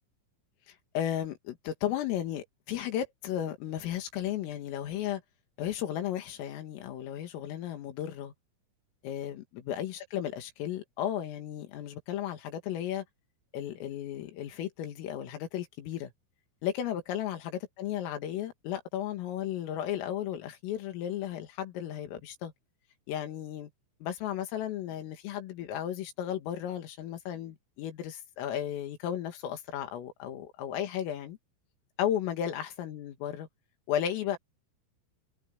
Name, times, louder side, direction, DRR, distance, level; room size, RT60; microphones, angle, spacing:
voice 1, 0.7-5.2 5.6-8.3 9.0-13.0 13.5-16.1 16.6-22.5 23.1-23.7 24.0-31.4 32.0-33.5 33.9-34.4, left 10 dB, 80° left, 5.0 m, -34 dB
omnidirectional pair, 5.9 m